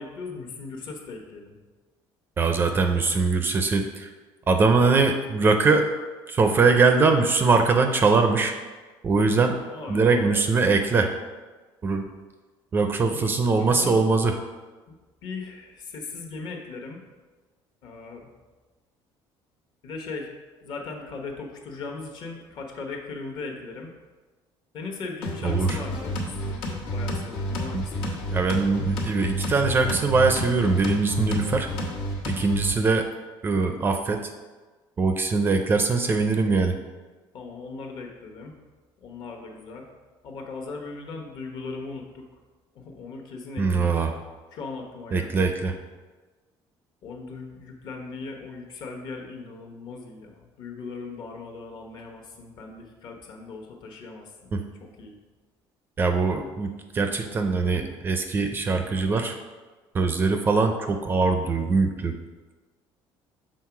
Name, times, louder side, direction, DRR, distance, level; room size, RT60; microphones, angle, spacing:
voice 1, 0.0-1.6 9.5-10.5 13.1-14.0 14.9-17.0 17.8-18.3 19.8-23.9 24.7-28.2 37.3-38.5 39.0-39.8 40.2-42.3 42.7-44.0 44.5-45.5 47.0-54.5 54.8-55.1, left 4 dB, 50° left, 1 dB, 1.1 m, -38 dB
voice 2, 2.4-4.1 4.5-5.9 6.3-8.5 9.0-9.6 9.9-11.1 11.8-12.1 12.7-14.4 25.4-25.8 27.7-27.8 28.3-31.7 32.3-33.1 33.4-34.3 35.0-36.7 43.6-44.1 45.1-45.7 54.5-54.6 56.0-59.4 59.9-62.2, right 4 dB, 20° right, 6 dB, 0.4 m, -22 dB
sound 1, 25.2-32.7, equal, 80° left, 1.4 m, -30 dB
6.5 x 3.8 x 5.9 m, 1.3 s
cardioid pair, 170°, 9 cm